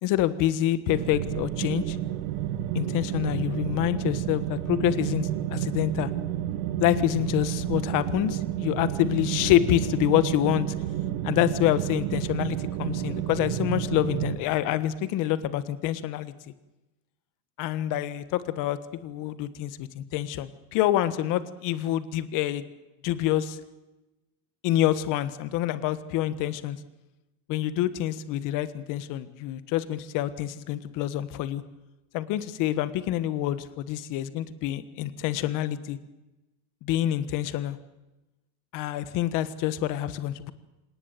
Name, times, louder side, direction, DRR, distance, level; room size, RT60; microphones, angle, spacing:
voice 1, 0.0-2.0 2.7-6.1 6.8-10.7 11.2-16.3 17.6-22.6 23.0-23.6 24.6-26.8 27.5-31.6 32.1-36.0 36.8-37.8 38.7-40.5, left 13 dB, 45° left, 13 dB, 1.5 m, -27 dB
sound 1, 0.9-14.4, right 12 dB, 80° right, 2.3 m, -30 dB
26.5 x 19.0 x 9.2 m, 1.0 s
cardioid pair, 165°, 44 cm